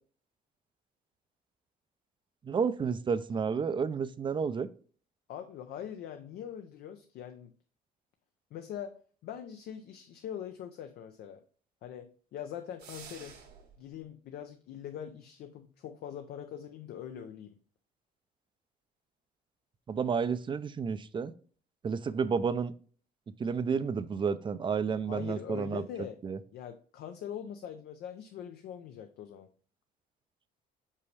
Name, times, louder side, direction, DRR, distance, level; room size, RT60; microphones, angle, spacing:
voice 1, 2.4-4.7 19.9-21.3 21.8-22.7 23.4-25.8 26.2-26.4, right 6 dB, 30° right, 14 dB, 0.5 m, -31 dB
voice 2, 5.3-7.5 8.5-8.9 9.2-11.4 11.8-13.4 13.8-17.6 20.3-20.4 25.1-26.2 26.5-29.5, left 9 dB, 70° left, 7 dB, 0.6 m, -42 dB
sound 1, 12.8-13.8, right 6 dB, 85° right, 1.8 m, -49 dB
5.5 x 5.2 x 3.3 m, 0.42 s
cardioid pair, 110°, 17 cm